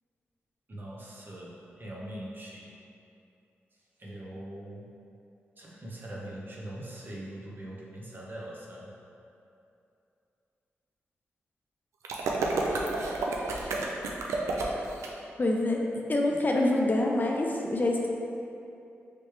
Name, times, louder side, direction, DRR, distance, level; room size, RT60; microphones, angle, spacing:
voice 1, 0.7-2.7 3.7-4.8 5.6-8.9 13.6-13.7, right 1 dB, 45° right, -5 dB, 0.8 m, -42 dB
sound 1, 12.0-15.1, right 3 dB, 85° right, 0.4 m, -30 dB
voice 2, 15.4-18.1, left 1 dB, 40° left, 0 dB, 0.4 m, -26 dB
3.3 x 3.1 x 3.1 m, 2.7 s
supercardioid pair, 45°, 5 cm